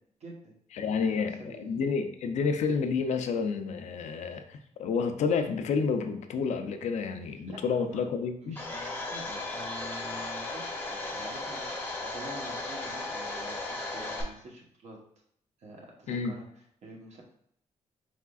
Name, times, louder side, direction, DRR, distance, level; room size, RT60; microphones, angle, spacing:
voice 1, 0.2-0.6 0.8-1.8 7.5-8.0 8.4-15.0 15.6-16.5 16.8-17.2, right 2 dB, 65° right, -1 dB, 1.1 m, -47 dB
voice 2, 0.7-8.6 16.1-16.4, left 5 dB, 70° left, 7 dB, 0.5 m, -30 dB
Domestic sounds home sounds, 8.6-14.2, left 2 dB, 15° left, 0.7 m, -36 dB
4.7 x 3.5 x 2.3 m, 0.70 s
wide cardioid pair, 175°, 13 cm